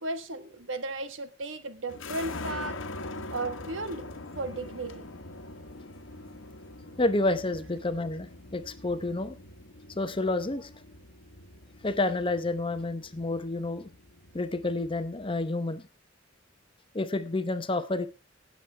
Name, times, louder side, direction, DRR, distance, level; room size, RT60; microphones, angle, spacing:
voice 1, 0.0-2.8 3.3-4.1 4.3-5.0, right 2 dB, 85° right, 10 dB, 1.4 m, -35 dB
sound 1, 1.9-15.5, left 2 dB, 85° left, 1.2 m, -43 dB
voice 2, 7.0-9.4 10.0-10.7 11.8-13.9 14.3-15.8 16.9-18.1, left 2 dB, 25° left, 12 dB, 0.8 m, -29 dB
18.5 x 7.4 x 3.4 m, 0.30 s
head